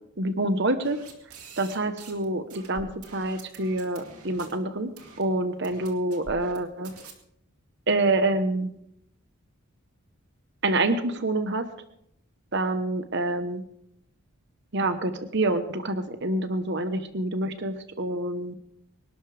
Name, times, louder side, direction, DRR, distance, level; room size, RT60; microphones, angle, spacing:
voice 1, 0.2-1.0 1.6-4.9 5.2-6.9 7.9-8.7 10.6-11.7 12.5-13.6 14.7-18.5, right 2 dB, 50° right, 9 dB, 1.0 m, -27 dB
Tape noises - sqiggles slowing down speeding up pausing, 0.8-2.2 2.5-4.5 5.0-5.2 5.6-6.6 6.8-7.1, right 4 dB, 90° right, 2.4 m, -46 dB
25.0 x 12.0 x 3.4 m, 0.74 s
head